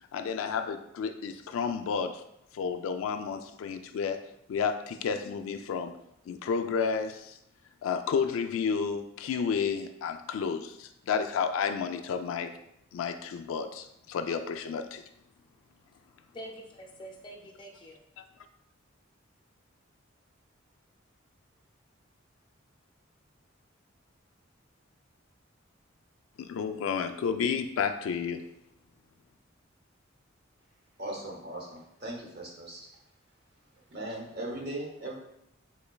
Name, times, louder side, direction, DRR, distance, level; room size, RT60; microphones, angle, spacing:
voice 1, 0.1-2.2 2.5-4.2 4.5-5.9 6.3-7.4 7.8-12.5 12.9-15.0 26.4-28.4, left 6 dB, 85° left, 8 dB, 0.3 m, -31 dB
voice 2, 15.9-18.0, right 1 dB, 25° left, 0 dB, 0.4 m, -46 dB
voice 3, 31.0-32.9 33.9-35.1, right 1 dB, 55° right, -1 dB, 0.8 m, -38 dB
3.6 x 3.2 x 2.2 m, 0.78 s
head